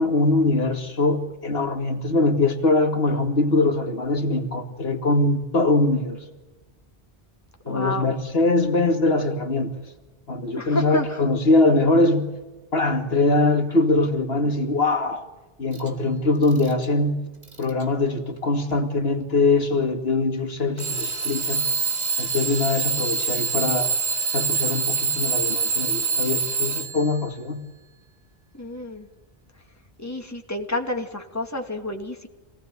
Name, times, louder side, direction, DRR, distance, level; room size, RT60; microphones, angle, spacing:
voice 1, 0.0-6.2 7.7-9.7 10.3-12.3 12.7-15.3 15.6-17.2 17.6-21.6 22.2-23.9 24.3-27.6, left 2 dB, 70° left, 5 dB, 2.5 m, -22 dB
voice 2, 7.7-8.1 10.6-11.2 28.5-29.1 30.0-32.3, left 1 dB, 15° left, 3 dB, 2.5 m, -30 dB
Alarm / Clock, 15.7-15.9 16.4-16.9 17.4-17.8 18.7-18.8 20.8-27.2, right 5 dB, 40° right, 2.3 m, -25 dB
27.5 x 18.0 x 9.5 m, 1.1 s
omnidirectional pair, 1.1 m